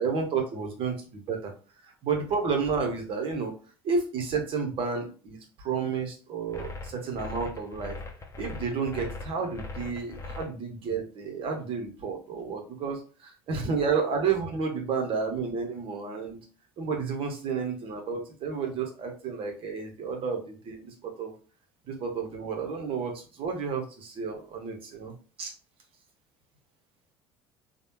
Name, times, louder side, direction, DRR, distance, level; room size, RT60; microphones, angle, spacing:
voice 1, 0.0-1.5 2.0-3.5 3.8-8.0 8.4-16.4 16.8-21.3 21.9-25.5, right 5 dB, 45° right, 3 dB, 1.1 m, -31 dB
sound 1, 6.5-10.5, left 3 dB, 25° left, 0.8 m, -39 dB
3.2 x 2.4 x 2.9 m, 0.37 s
figure-of-eight pair, 60°, 13 cm